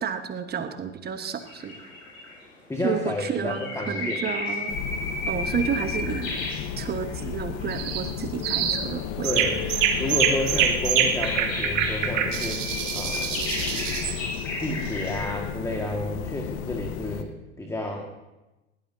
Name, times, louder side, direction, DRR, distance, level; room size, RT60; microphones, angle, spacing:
voice 1, 0.0-1.7 2.8-4.8 5.3-6.4 6.8-9.3, right 7 dB, 25° right, 8 dB, 1.3 m, -31 dB
sound 1, 1.4-2.4 3.0-7.2 7.6-8.2 9.0-15.2, left 2 dB, 80° left, 6.9 m, -34 dB
voice 2, 2.7-4.2 9.2-12.7 12.9-13.4 14.6-18.1, left 1 dB, 5° left, 1 dB, 1.8 m, -31 dB
sound 2, 4.7-17.2, left 8 dB, 50° left, 1.3 m, -34 dB
sound 3, 7.7-8.1 8.4-8.8 9.2-14.2, right 8 dB, 70° right, 2.0 m, -25 dB
20.5 x 17.5 x 2.8 m, 1.0 s
hypercardioid pair, 90°, 39 cm